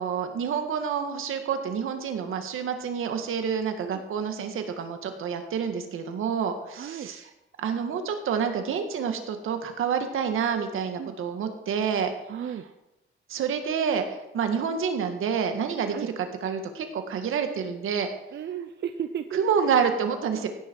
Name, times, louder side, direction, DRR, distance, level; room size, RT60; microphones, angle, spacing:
voice 1, 0.0-7.3 7.6-12.1 13.3-18.1 19.3-20.5, right 7 dB, 80° right, 6 dB, 1.9 m, -28 dB
voice 2, 6.7-7.1 11.0-11.2 12.3-12.6 15.9-16.1 18.3-19.4, right 9 dB, 55° right, 9 dB, 0.7 m, -34 dB
16.0 x 10.0 x 4.7 m, 0.92 s
cardioid pair, 110°, 21 cm